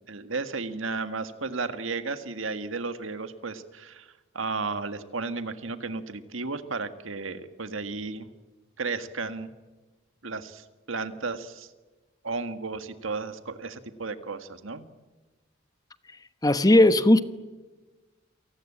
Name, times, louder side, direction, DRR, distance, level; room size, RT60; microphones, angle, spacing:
voice 1, 0.1-4.1 4.3-8.3 8.8-9.5 10.2-11.7 12.2-14.8, right 4 dB, 75° right, 1.8 m, -33 dB
voice 2, 16.4-17.2, left 1 dB, 20° left, 1.0 m, -17 dB
28.0 x 19.0 x 8.8 m
head